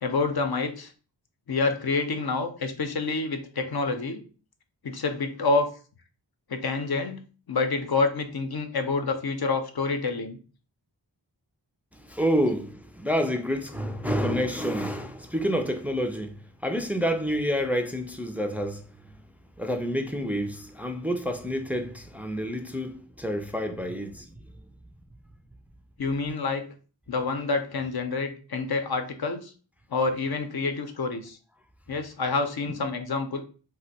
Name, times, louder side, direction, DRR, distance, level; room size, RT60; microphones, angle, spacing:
voice 1, 0.0-0.9 1.5-4.2 4.8-5.7 6.5-7.2 7.5-10.4 26.0-26.7 27.1-29.5 29.9-31.4 31.9-33.4, left 3 dB, 60° left, 0.6 m, -27 dB
voice 2, 12.0-18.9 19.6-24.3, equal, 5° right, 0.3 m, -28 dB
2.5 x 2.1 x 4.0 m
wide cardioid pair, 45°, 44 cm